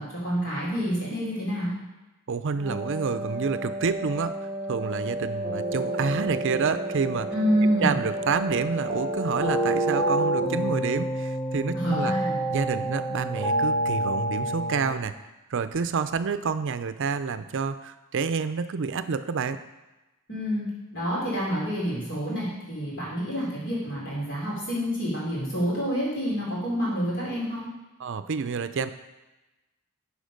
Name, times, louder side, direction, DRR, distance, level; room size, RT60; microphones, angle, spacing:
voice 1, 0.0-1.8 7.3-8.0 11.7-12.3 20.3-20.7 20.9-27.7, equal, 55° left, -6 dB, 3.7 m, -28 dB
voice 2, 2.3-4.4 4.7-7.3 7.6-12.1 12.5-15.2 15.5-19.6 28.0-28.9, right 5 dB, 60° right, 12 dB, 0.5 m, -28 dB
Wind instrument woodwind instrument, 2.5-10.5, right 1 dB, 20° right, 1.8 m, -33 dB
sound 1, 5.4-14.9, right 1 dB, 5° left, 2.8 m, -29 dB
11.5 x 5.0 x 5.2 m, 1.1 s
head